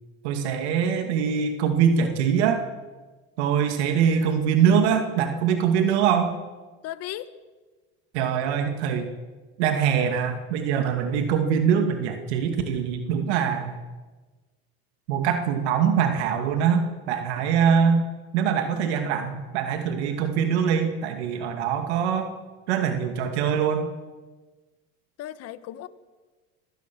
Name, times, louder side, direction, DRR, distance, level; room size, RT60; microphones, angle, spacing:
voice 1, 0.2-2.6 3.4-6.3 8.1-9.1 9.6-13.8 15.1-18.1 18.3-22.3 22.7-23.9, right 7 dB, 85° right, 6 dB, 2.3 m, -23 dB
voice 2, 6.8-7.3 25.2-25.9, left 13 dB, 50° left, 14 dB, 1.4 m, -35 dB
25.0 x 17.5 x 6.2 m, 1.3 s
supercardioid pair, 120°, 32 cm